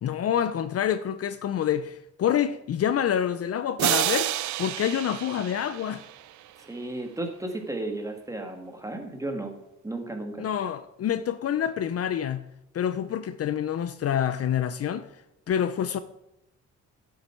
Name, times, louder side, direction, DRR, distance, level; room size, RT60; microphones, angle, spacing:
voice 1, 0.0-4.3 4.6-6.0 10.4-12.4 12.7-15.1 15.5-16.0, left 9 dB, 50° left, 0.6 m, -27 dB
sound 1, 3.8-6.5, right 14 dB, 70° right, 0.5 m, -29 dB
voice 2, 6.6-9.5 9.8-10.5, right 2 dB, 10° right, 1.9 m, -34 dB
11.5 x 7.4 x 4.5 m
cardioid pair, 90°, 30 cm